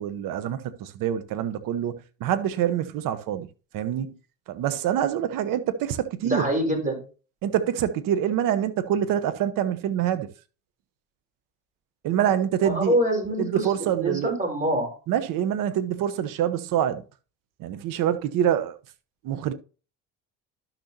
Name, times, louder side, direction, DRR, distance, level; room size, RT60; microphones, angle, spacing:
voice 1, 0.0-3.5 3.7-4.2 4.5-6.4 7.4-10.3 12.0-13.0 13.4-14.4 15.1-17.0 17.6-18.7 19.2-19.5, right 10 dB, 65° right, 1.1 m, -26 dB
voice 2, 6.2-7.0 12.6-13.7 14.0-14.9, equal, 20° right, 5.0 m, -25 dB
12.0 x 6.6 x 2.9 m
supercardioid pair, 85°, 35 cm